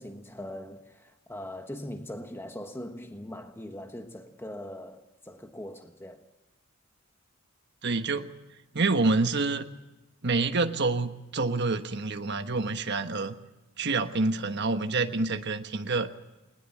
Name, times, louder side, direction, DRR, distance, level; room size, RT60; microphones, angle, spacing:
voice 1, 0.0-6.2, left 1 dB, 10° left, 1.3 m, -41 dB
voice 2, 7.8-8.3 8.7-9.6 10.2-13.3 13.8-16.1, right 3 dB, 55° right, 1.3 m, -27 dB
21.0 x 20.0 x 7.3 m
head